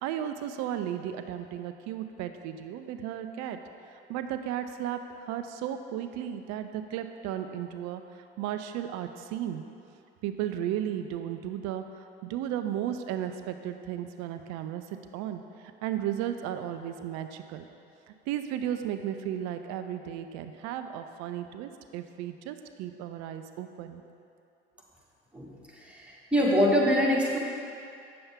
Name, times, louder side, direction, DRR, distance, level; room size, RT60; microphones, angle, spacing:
voice 1, 0.0-3.6 4.1-8.0 8.4-9.6 10.2-14.8 15.1-15.4 15.8-17.7 18.3-24.0, right 10 dB, 65° right, 8 dB, 0.6 m, -34 dB
voice 2, 25.8-27.4, equal, 5° right, -5 dB, 1.8 m, -24 dB
8.6 x 7.0 x 3.6 m, 2.6 s
hypercardioid pair, 60°, 29 cm